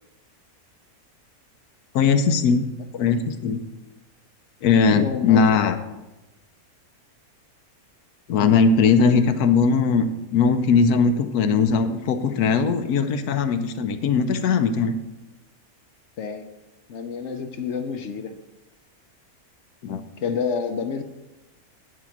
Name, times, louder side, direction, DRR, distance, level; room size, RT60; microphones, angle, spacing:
voice 1, 1.9-2.7 3.0-3.7 4.6-5.8 8.3-15.0 19.8-20.0, left 5 dB, 85° left, 9 dB, 1.2 m, -19 dB
voice 2, 4.9-5.5 16.2-16.5 16.9-18.4 20.2-21.0, left 6 dB, 65° left, 8 dB, 0.8 m, -29 dB
9.7 x 4.7 x 5.9 m, 1.0 s
omnidirectional pair, 1.6 m